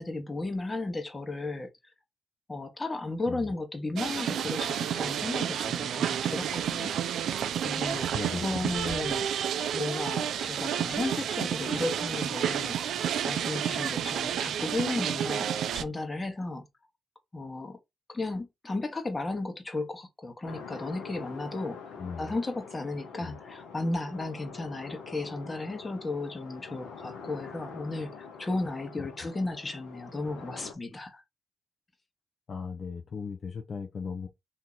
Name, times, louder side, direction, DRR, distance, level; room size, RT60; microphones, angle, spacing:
voice 1, 0.0-1.7 2.5-6.9 7.6-9.3 9.7-12.8 13.2-15.5 15.7-16.7 17.3-17.8 18.1-31.2, left 2 dB, 30° left, 1.1 m, -34 dB
sound 1, 4.0-15.8, right 9 dB, 80° right, 0.3 m, -30 dB
voice 2, 8.1-9.0 22.0-22.3 23.2-23.4 29.0-29.1 32.5-34.3, left 5 dB, 55° left, 0.6 m, -38 dB
sound 2, 20.4-30.7, left 6 dB, 90° left, 0.9 m, -45 dB
2.9 x 2.8 x 3.7 m
cardioid pair, 65°, 0 cm